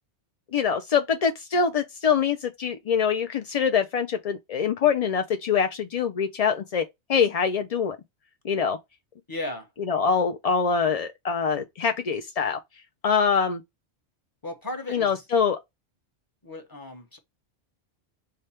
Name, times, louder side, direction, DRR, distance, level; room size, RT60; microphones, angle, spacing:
voice 1, 0.5-6.8 7.1-8.0 8.4-8.8 9.9-12.6 13.0-13.6 14.9-15.6, left 6 dB, 60° left, 0.4 m, -24 dB
voice 2, 9.3-9.7 14.4-15.2 16.4-17.2, left 1 dB, 20° left, 1.0 m, -35 dB
4.9 x 2.3 x 4.2 m
omnidirectional pair, 1.2 m